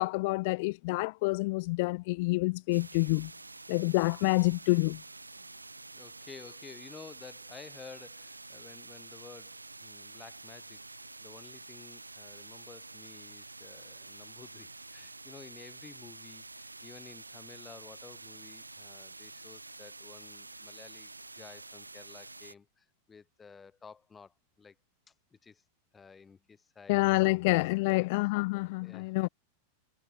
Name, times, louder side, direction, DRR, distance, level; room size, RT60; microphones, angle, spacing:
voice 1, 0.0-3.3 3.7-5.0 26.9-29.3, left 24 dB, 50° left, 0.4 m, -27 dB
sound 1, 2.7-22.5, right 3 dB, 80° right, 2.0 m, -48 dB
voice 2, 5.9-10.8 11.2-21.1 21.4-24.8 25.3-25.6 25.9-27.4 27.9-28.1 28.8-29.3, left 5 dB, 15° left, 2.9 m, -53 dB
figure-of-eight pair, 90°, 0 cm